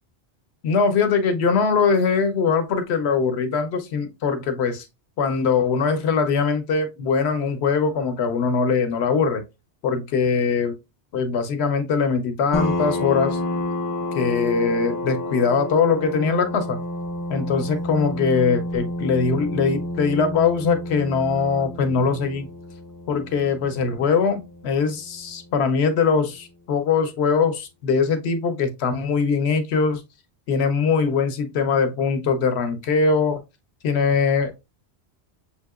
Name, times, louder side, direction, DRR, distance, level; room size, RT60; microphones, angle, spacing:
voice 1, 0.6-4.9 5.2-9.4 9.8-10.8 11.1-13.4 14.1-16.8 17.3-22.5 23.1-30.0 30.5-33.4 33.8-34.7, left 5 dB, 75° left, 1.0 m, -22 dB
sound 1, 12.5-25.8, left 1 dB, 30° left, 0.4 m, -30 dB
6.6 x 2.8 x 2.3 m
omnidirectional pair, 1.1 m